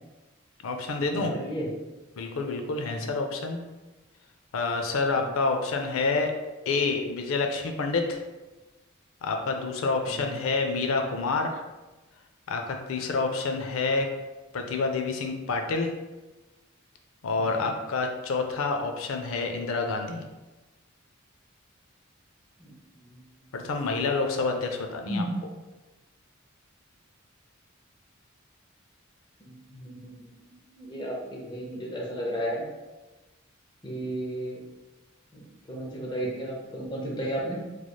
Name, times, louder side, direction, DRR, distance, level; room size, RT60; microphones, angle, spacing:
voice 1, 0.6-1.3 2.2-3.6 4.5-6.3 6.7-8.2 9.2-11.6 12.5-14.1 14.5-15.9 17.2-20.2 23.5-25.2, left 3 dB, 85° left, 4 dB, 0.4 m, -28 dB
voice 2, 1.1-1.7 2.9-3.1 5.1-5.3 10.1-10.3 17.6-17.7 22.6-22.7 25.1-25.3 29.4-30.1 30.4-32.6 33.8-34.6 35.3-37.6, right 1 dB, 20° left, -2 dB, 0.6 m, -34 dB
3.1 x 3.1 x 2.2 m, 1.1 s
head